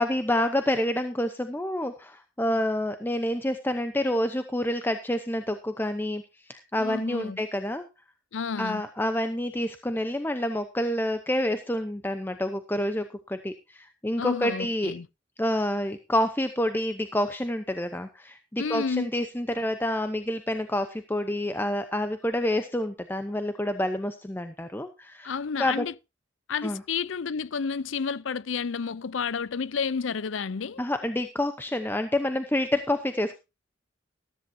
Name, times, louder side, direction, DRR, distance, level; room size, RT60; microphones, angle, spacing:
voice 1, 0.0-6.2 6.5-7.8 8.6-14.9 15.4-25.8 26.6-26.8 30.8-33.4, left 1 dB, 10° left, 0.8 m, -28 dB
voice 2, 6.8-7.4 8.3-8.8 14.2-15.1 18.6-19.1 25.2-25.9 26.5-30.8, left 5 dB, 80° left, 0.6 m, -31 dB
14.0 x 13.5 x 2.7 m
head